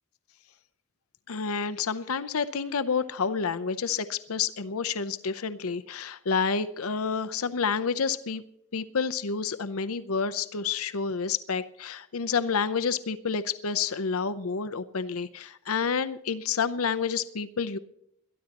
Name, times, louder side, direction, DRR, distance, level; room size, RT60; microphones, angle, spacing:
voice 1, 1.3-8.4 8.7-17.8, left 5 dB, 80° left, 12 dB, 0.7 m, -29 dB
22.0 x 13.5 x 2.9 m, 0.75 s
head